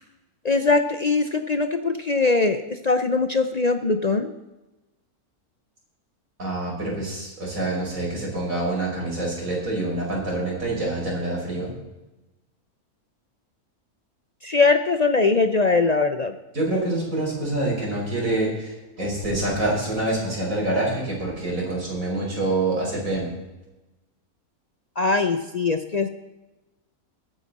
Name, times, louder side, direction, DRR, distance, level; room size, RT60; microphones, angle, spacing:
voice 1, 0.4-4.3 14.4-16.3 25.0-26.1, left 3 dB, 55° left, 8 dB, 0.4 m, -21 dB
voice 2, 6.4-11.7 16.5-23.3, right 2 dB, 60° right, -3 dB, 5.5 m, -26 dB
21.5 x 9.2 x 4.2 m, 1.0 s
omnidirectional pair, 1.6 m